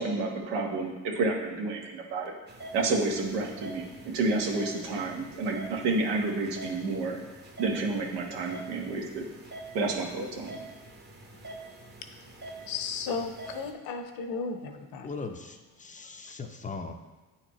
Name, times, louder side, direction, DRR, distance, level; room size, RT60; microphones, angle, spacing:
voice 1, 0.0-2.3 2.7-7.2 7.6-9.3 9.7-10.6, right 3 dB, 80° right, 1 dB, 1.3 m, -30 dB
sound 1, 2.5-13.7, right 2 dB, 25° right, 1.0 m, -46 dB
voice 2, 12.7-15.1, left 4 dB, 60° left, 7 dB, 0.8 m, -34 dB
voice 3, 15.0-16.9, left 4 dB, 20° left, 5 dB, 0.5 m, -39 dB
9.4 x 4.3 x 3.0 m, 1.2 s
supercardioid pair, 90°, 39 cm